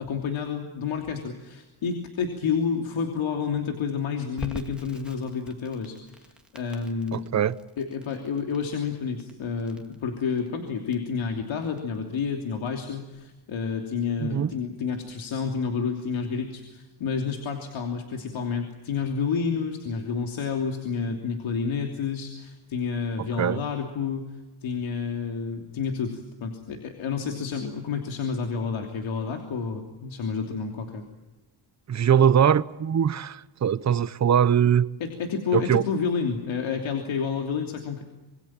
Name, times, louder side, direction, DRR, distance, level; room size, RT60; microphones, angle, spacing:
voice 1, 0.0-7.2 7.8-24.3 24.6-31.0 35.0-38.0, left 5 dB, 70° left, 3.1 m, -30 dB
Crackle, 4.4-15.1, equal, ahead, 2.1 m, -47 dB
voice 2, 7.1-7.6 14.2-14.5 23.2-23.6 31.9-34.9 35.5-35.8, right 8 dB, 35° right, 0.8 m, -22 dB
27.0 x 22.5 x 7.4 m
cardioid pair, 140°, 49 cm